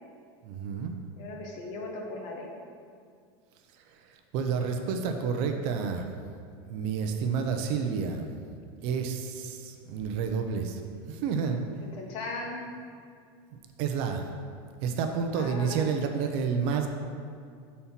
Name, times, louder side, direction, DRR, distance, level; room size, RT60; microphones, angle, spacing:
voice 1, 0.4-1.0 4.3-6.1 6.7-8.3 8.8-10.8 11.1-11.6 13.8-14.2 14.8-16.9, right 6 dB, 45° right, 5 dB, 0.6 m, -29 dB
voice 2, 1.1-2.5 11.8-12.6 15.3-15.9, left 3 dB, 45° left, 0 dB, 1.1 m, -38 dB
7.2 x 4.2 x 5.7 m, 2.2 s
supercardioid pair, 165°, 13 cm